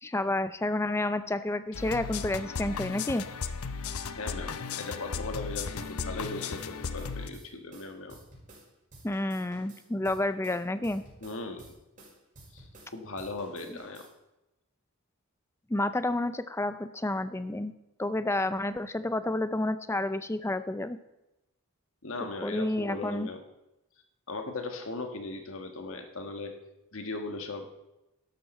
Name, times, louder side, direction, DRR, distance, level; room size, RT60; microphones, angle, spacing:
voice 1, 0.0-3.2 9.0-11.0 15.7-17.7 18.0-21.0 22.4-23.3, left 1 dB, 10° left, 12 dB, 0.4 m, -30 dB
sound 1, 1.7-7.3, left 5 dB, 80° left, 0.7 m, -36 dB
voice 2, 4.2-8.2 11.2-11.6 12.5-14.1 22.0-23.4 24.3-26.5 26.9-27.7, left 3 dB, 65° left, 5 dB, 1.5 m, -38 dB
sound 2, 5.8-8.7 8.9-12.9 13.2-14.1, right 1 dB, 35° right, 5.3 m, -52 dB
12.0 x 12.0 x 4.3 m, 0.96 s
head